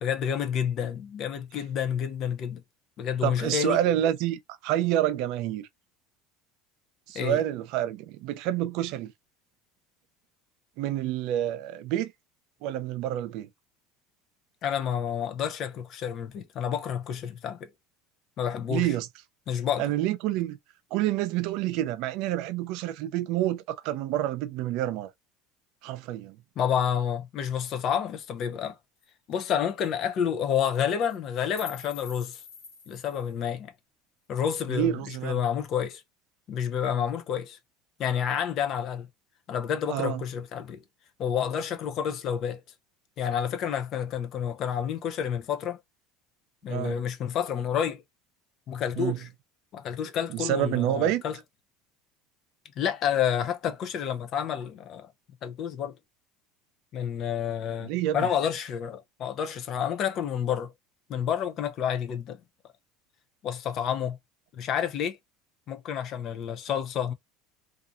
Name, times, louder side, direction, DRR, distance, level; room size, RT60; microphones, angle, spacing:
voice 1, 0.0-2.6 3.0-3.8 7.1-7.4 14.6-17.7 18.4-18.9 19.5-19.9 26.6-28.8 29.3-32.4 32.9-33.7 34.3-36.0 36.5-37.6 38.0-39.1 39.5-40.8 41.2-42.6 43.2-45.8 46.6-48.0 48.7-49.3 49.7-51.4 52.8-55.1 55.4-56.0 56.9-60.7 61.1-62.4 63.4-64.2 64.5-65.2 65.7-67.1, left 8 dB, 50° left, 0.5 m, -29 dB
voice 2, 3.2-5.7 7.1-9.1 10.8-12.1 12.6-13.5 18.7-19.1 19.8-20.6 20.9-25.1 25.8-26.4 34.7-35.4 39.9-40.2 46.7-47.0 49.0-49.2 50.3-51.2 57.8-58.3, right 12 dB, 65° right, 0.4 m, -28 dB
sound 1, 28.6-28.7 29.0-29.1 29.3-29.5 29.8-29.9 30.6-30.8 31.1-33.4, left 6 dB, 90° left, 1.2 m, -46 dB
2.7 x 2.4 x 2.4 m
supercardioid pair, 105°, 0 cm